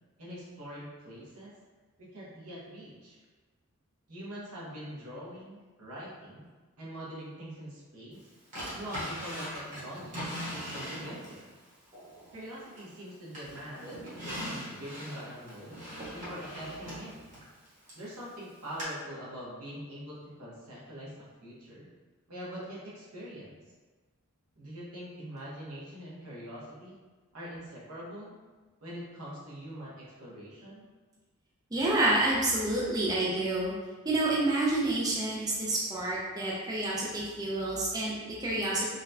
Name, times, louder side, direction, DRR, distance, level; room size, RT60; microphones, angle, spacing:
voice 1, 0.2-1.5 2.0-3.2 4.1-6.4 6.8-8.3 8.7-11.5 12.3-15.8 16.1-17.1 17.9-21.9 22.3-23.6 24.6-27.0 27.3-28.4 28.8-30.9, equal, 80° right, -7 dB, 1.1 m, -43 dB
Drawer open or close, 8.5-11.4 11.9-13.0 13.3-18.1 18.8-18.9, equal, 35° right, 1.1 m, -40 dB
voice 2, 31.7-33.7 34.0-38.9, right 2 dB, 15° right, -6 dB, 0.4 m, -28 dB
3.8 x 2.2 x 2.6 m, 1.3 s
head